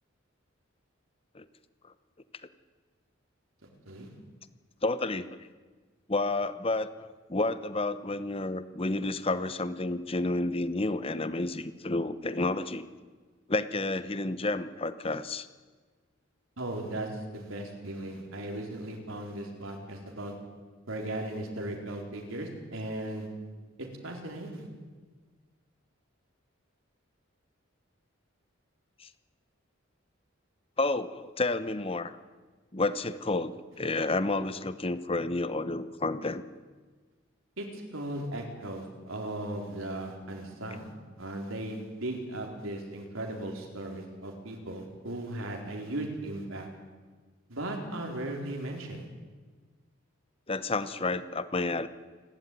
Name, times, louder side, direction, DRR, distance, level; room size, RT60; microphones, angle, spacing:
voice 1, 3.9-4.2 16.6-20.3 20.9-23.3 24.0-24.7 37.6-40.9 41.2-46.7 47.5-49.1, right 1 dB, 85° right, 1 dB, 4.5 m, -37 dB
voice 2, 4.8-5.3 6.1-12.8 13.5-15.5 29.0-29.1 30.8-32.1 32.7-36.4 50.5-51.9, left 2 dB, 25° left, 13 dB, 0.9 m, -30 dB
28.5 x 12.5 x 9.4 m, 1.4 s
head